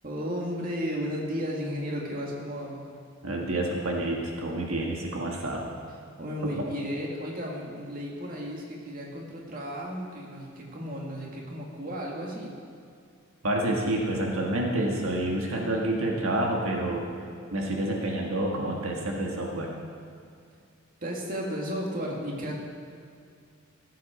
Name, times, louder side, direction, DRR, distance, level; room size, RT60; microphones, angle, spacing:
voice 1, 0.0-2.9 6.2-12.5 21.0-22.5, equal, 40° right, -2 dB, 2.0 m, -34 dB
voice 2, 3.2-5.7 6.4-6.6 13.4-17.0 17.5-19.7, right 1 dB, 80° right, -1 dB, 1.6 m, -28 dB
16.0 x 8.6 x 5.0 m, 2.4 s
head